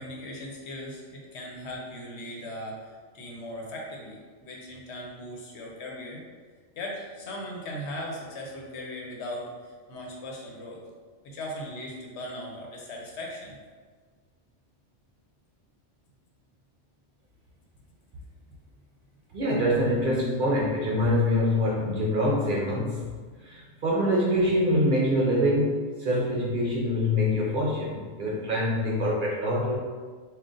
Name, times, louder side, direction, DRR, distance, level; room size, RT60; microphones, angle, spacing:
voice 1, 0.0-6.2 6.8-10.8 11.2-13.6 23.5-23.8, left 1 dB, 70° left, -1 dB, 1.0 m, -38 dB
voice 2, 19.3-23.1 23.4-29.8, left 1 dB, 55° right, -3 dB, 0.7 m, -25 dB
3.8 x 2.4 x 3.7 m, 1.5 s
omnidirectional pair, 1.2 m